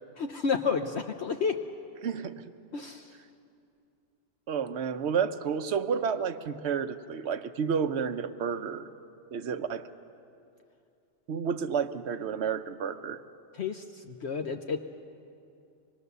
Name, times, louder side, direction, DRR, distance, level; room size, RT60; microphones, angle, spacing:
voice 1, 0.2-1.6 2.7-3.2 13.5-14.8, left 5 dB, 60° left, 5 dB, 1.0 m, -31 dB
voice 2, 2.0-2.4 4.5-8.9 9.3-9.9 11.3-13.2, right 6 dB, 60° right, 10 dB, 1.0 m, -30 dB
25.0 x 21.0 x 6.8 m, 2.6 s
omnidirectional pair, 1.4 m